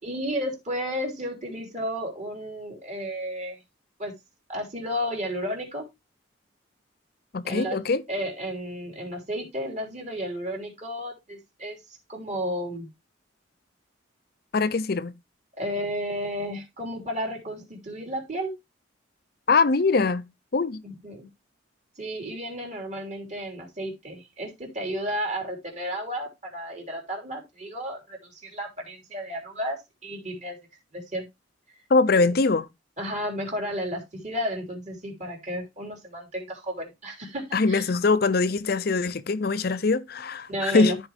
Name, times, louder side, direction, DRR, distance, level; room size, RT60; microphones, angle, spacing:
voice 1, 0.0-3.6 4.0-4.1 4.5-5.9 7.4-7.8 8.1-11.8 12.1-12.9 15.6-18.5 20.8-21.3 22.0-30.7 30.9-31.3 31.7-31.8 33.0-37.9 40.5-41.0, equal, 35° right, 3.2 m, -33 dB
voice 2, 7.3-8.0 14.5-15.1 19.5-20.3 20.5-20.8 31.9-32.7 37.5-40.9, left 3 dB, 50° left, 0.6 m, -22 dB
13.5 x 4.6 x 3.3 m
head